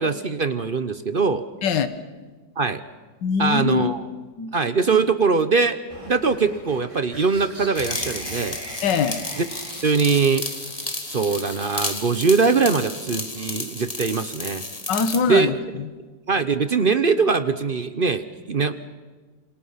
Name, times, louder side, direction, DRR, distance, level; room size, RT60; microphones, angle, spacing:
voice 1, 0.0-1.4 2.6-2.8 3.4-4.1 4.5-5.8 6.1-8.6 9.4-9.5 9.8-10.4 11.1-14.6 15.3-15.6 16.3-18.7, right 4 dB, 45° right, 11 dB, 0.7 m, -21 dB
voice 2, 3.2-3.9 4.4-4.5 8.8-9.2 14.9-15.9, left 6 dB, 70° left, 11 dB, 1.9 m, -23 dB
sound 1, 5.9-12.1, right 1 dB, 15° right, 3.5 m, -41 dB
sound 2, 7.7-15.2, left 2 dB, 20° left, 1.9 m, -32 dB
27.5 x 26.5 x 5.8 m, 1.3 s
omnidirectional pair, 2.0 m